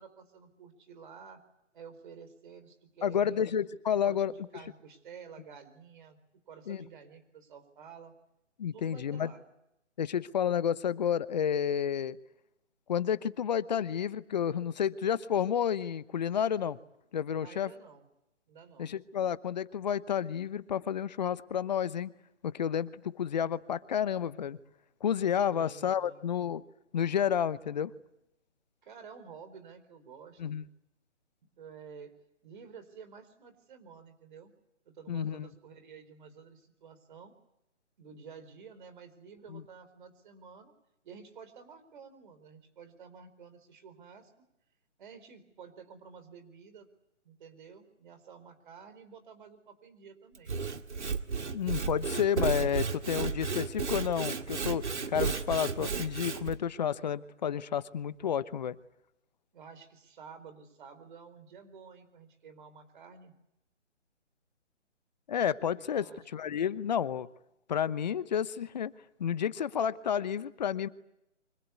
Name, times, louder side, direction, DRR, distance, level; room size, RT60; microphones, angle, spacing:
voice 1, 0.0-1.4 1.7-3.4 4.0-6.2 6.5-8.1 8.7-9.4 17.4-18.1 18.5-18.9 25.5-26.3 28.8-30.6 31.6-32.1 32.4-34.5 34.9-37.3 38.0-40.7 41.0-44.3 45.0-46.9 47.2-50.5 59.5-63.3 65.8-66.3, right 6 dB, 40° right, 10 dB, 4.2 m, -51 dB
voice 2, 3.0-4.3 6.7-6.8 8.6-9.3 10.0-12.2 12.9-16.8 17.1-17.7 18.8-22.1 22.4-24.6 25.0-26.6 26.9-27.9 30.4-30.6 35.1-35.5 39.5-39.6 51.5-58.8 65.3-67.3 67.7-68.9 69.2-70.9, left 8 dB, 35° left, 17 dB, 0.9 m, -30 dB
Sawing / Wood, 50.3-56.6, right 5 dB, 70° right, 2.0 m, -33 dB
25.0 x 24.5 x 8.4 m, 0.83 s
figure-of-eight pair, 145°, 36 cm